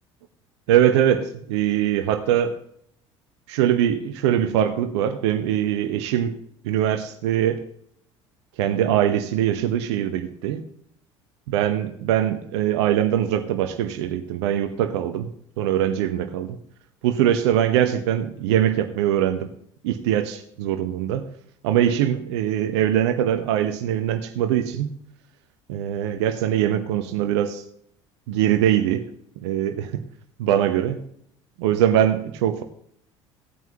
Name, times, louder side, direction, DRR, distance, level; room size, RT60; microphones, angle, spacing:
voice 1, 0.7-2.5 3.5-6.3 6.6-7.6 8.6-10.6 11.5-15.3 15.6-16.6 17.0-19.5 19.8-21.3 21.6-24.9 25.7-27.6 28.3-29.1 29.4-30.0 30.4-31.0 31.6-32.6, right 10 dB, 60° right, 8 dB, 0.9 m, -22 dB
16.5 x 9.1 x 2.9 m, 0.66 s
figure-of-eight pair, 60°, 16 cm